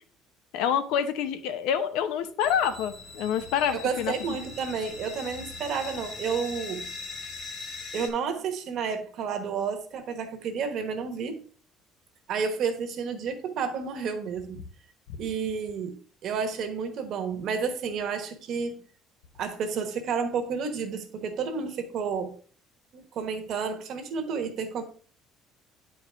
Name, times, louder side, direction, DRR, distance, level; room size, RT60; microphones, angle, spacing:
voice 1, 0.5-4.1 15.1-15.2, left 8 dB, 80° left, 0.8 m, -27 dB
sound 1, 2.4-8.1, left 3 dB, 35° left, 1.3 m, -40 dB
voice 2, 3.7-6.8 7.9-11.4 12.3-14.6 15.2-18.8 19.4-22.3 22.9-24.8, right 6 dB, 45° right, 1.1 m, -31 dB
9.4 x 4.7 x 3.5 m
cardioid pair, 165°, 0 cm